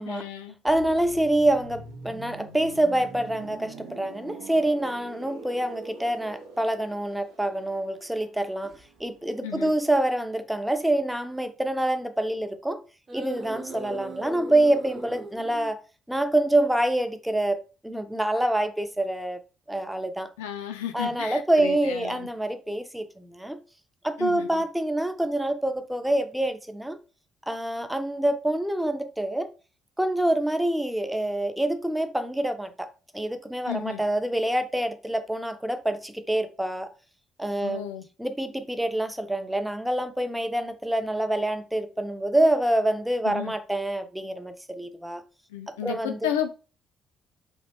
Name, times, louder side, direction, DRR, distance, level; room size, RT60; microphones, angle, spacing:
voice 1, 0.0-0.6 9.4-9.7 20.4-22.3 24.2-24.6 33.7-34.0 37.6-38.0 43.2-43.5 45.5-46.5, left 9 dB, 80° left, 0.3 m, -33 dB
voice 2, 0.6-8.7 9.0-12.8 13.1-15.8 16.1-19.4 19.7-20.3 20.9-23.6 24.0-27.0 27.5-29.5 30.0-32.9 33.1-36.9 37.4-37.9 38.2-45.2 45.8-46.2, right 1 dB, 5° right, 0.5 m, -26 dB
sound 1, 0.7-10.3 10.6-10.8, right 3 dB, 75° right, 0.5 m, -45 dB
sound 2, 6.2-6.4 7.1-7.2 8.6-8.8 9.9-10.2 10.8-11.0 13.1-15.7, right 2 dB, 40° right, 0.9 m, -39 dB
2.8 x 2.0 x 2.7 m
figure-of-eight pair, 45°, 0 cm